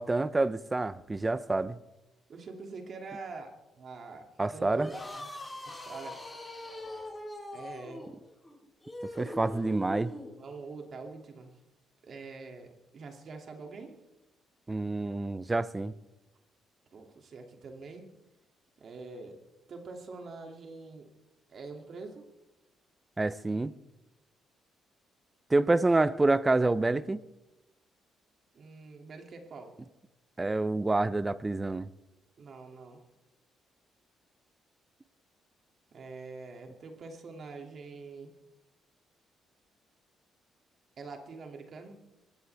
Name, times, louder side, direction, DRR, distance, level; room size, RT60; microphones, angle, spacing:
voice 1, 0.0-1.8 4.4-4.9 9.2-10.1 14.7-15.9 23.2-23.7 25.5-27.2 30.4-31.9, right 2 dB, 20° right, 0.7 m, -27 dB
voice 2, 2.3-5.3 5.6-6.2 7.5-8.1 10.4-11.5 12.0-13.9 16.9-18.1 18.8-19.4 19.7-21.1 21.5-22.2 28.5-29.7 32.4-33.0 35.9-38.3 41.0-42.0, right 4 dB, 55° right, 2.6 m, -45 dB
sound 1, 4.8-10.3, left 1 dB, 15° left, 4.8 m, -42 dB
22.5 x 15.5 x 3.5 m
cardioid pair, 90°, 0 cm